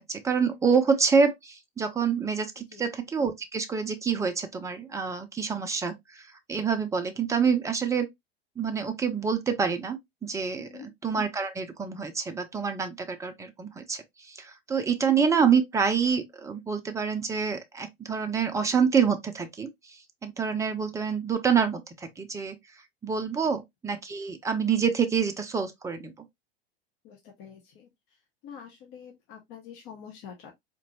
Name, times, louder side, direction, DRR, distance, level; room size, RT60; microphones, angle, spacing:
voice 1, 0.0-8.1 8.6-22.6 23.0-26.1, right 6 dB, 10° right, 0.6 m, -27 dB
voice 2, 2.6-2.9 10.6-10.9 23.4-23.5 27.0-27.9 28.4-30.5, left 8 dB, 40° left, 1.0 m, -46 dB
4.1 x 2.9 x 2.7 m
figure-of-eight pair, 85°, 31 cm